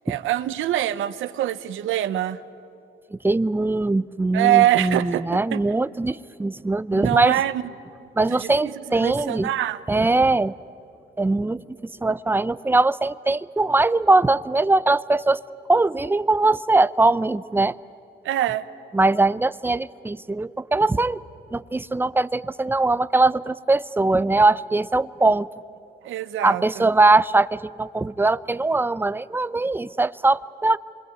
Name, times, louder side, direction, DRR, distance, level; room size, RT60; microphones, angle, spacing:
voice 1, 0.0-2.4 4.3-5.6 6.9-7.6 8.3-9.8 18.2-18.6 26.0-26.9, right 13 dB, 80° right, 12 dB, 1.0 m, -24 dB
voice 2, 3.1-7.4 8.2-9.5 9.9-10.5 11.2-15.4 15.7-17.8 18.9-21.2 21.5-25.5 26.4-30.8, right 2 dB, 10° right, 14 dB, 0.6 m, -21 dB
27.0 x 22.5 x 9.4 m, 2.8 s
cardioid pair, 90°, 20 cm